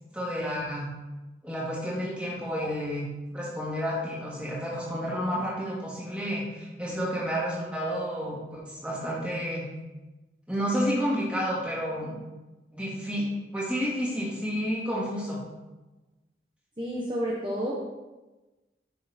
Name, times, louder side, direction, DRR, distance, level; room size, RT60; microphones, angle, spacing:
voice 1, 0.1-0.9 1.4-3.1 3.3-9.7 10.5-12.2 12.7-15.4, equal, 5° right, -7 dB, 2.6 m, -30 dB
voice 2, 16.8-17.8, equal, 25° right, -5 dB, 1.1 m, -30 dB
8.8 x 6.5 x 4.4 m, 1.1 s
head